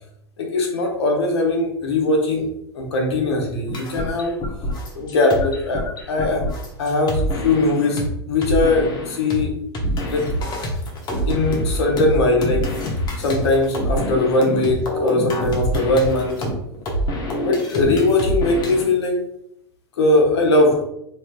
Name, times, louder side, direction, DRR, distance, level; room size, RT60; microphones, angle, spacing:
voice 1, 0.4-2.5 2.7-4.4 4.9-6.5 6.8-9.6 10.1-10.3 11.3-12.8 13.2-16.5 17.4-19.3 20.0-20.8, left 2 dB, 85° left, 0 dB, 0.9 m, -20 dB
sound 1, 3.7-8.1 8.4-9.4 9.7-18.9, equal, 30° left, 0.9 m, -26 dB
3.1 x 2.8 x 2.2 m, 0.77 s
hypercardioid pair, 115°, 14 cm